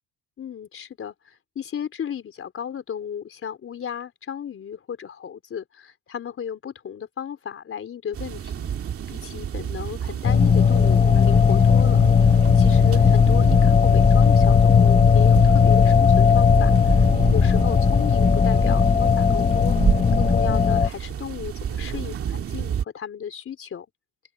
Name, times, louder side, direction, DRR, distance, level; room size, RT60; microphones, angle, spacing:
voice 1, 0.4-8.7 9.1-12.1 12.6-19.8 20.2-23.9, left 8 dB, 35° left, 4.0 m, -34 dB
sound 1, 8.1-22.8, right 8 dB, 40° right, 2.1 m, -30 dB
sound 2, 10.2-20.9, left 6 dB, 20° left, 1.0 m, -17 dB
open air
cardioid pair, 135°, 37 cm